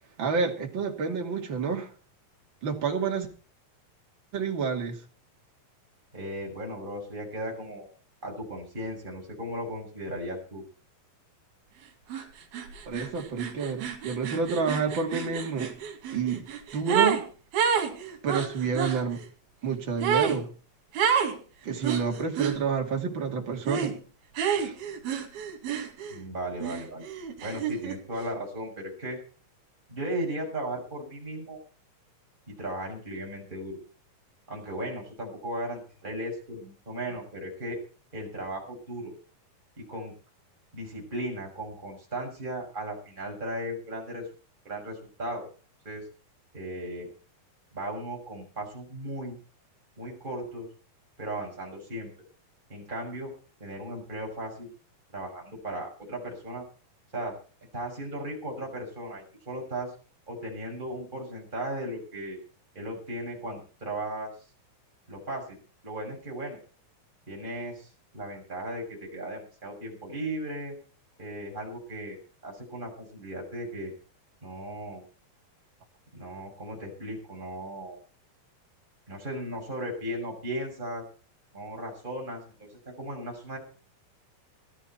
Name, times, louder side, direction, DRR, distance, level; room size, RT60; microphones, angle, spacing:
voice 1, 0.2-1.9 2.6-3.3 4.3-5.0 12.9-15.7 16.1-16.4 16.7-17.2 18.2-19.2 19.6-20.5 21.6-24.0 24.5-24.7, right 5 dB, 35° right, 2 dB, 2.9 m, -29 dB
voice 2, 6.1-7.9 8.2-10.6 26.1-27.1 27.4-29.2 29.9-31.6 32.5-33.8 34.5-37.8 38.1-39.1 39.9-40.1 40.7-44.2 44.6-45.4 45.8-46.0 46.5-47.1 47.7-49.4 50.0-50.7 51.2-52.1 52.7-53.3 53.6-54.7 55.1-56.6 57.1-57.3 57.7-59.9 60.3-62.4 62.7-64.3 65.1-65.4 65.8-66.6 67.3-70.7 71.2-72.2 72.4-73.9 74.4-75.0 76.1-78.0 79.1-81.0 81.5-82.7 83.0-83.6, right 1 dB, 10° right, -1 dB, 6.7 m, -36 dB
sound 1, 12.1-12.3 12.5-17.2 17.5-19.0 20.0-20.4 21.0-21.4 21.8-22.6 23.7-24.0 24.4-26.2 26.6-28.0, right 7 dB, 90° right, 4.4 m, -29 dB
17.0 x 13.0 x 4.4 m, 0.39 s
omnidirectional pair, 4.3 m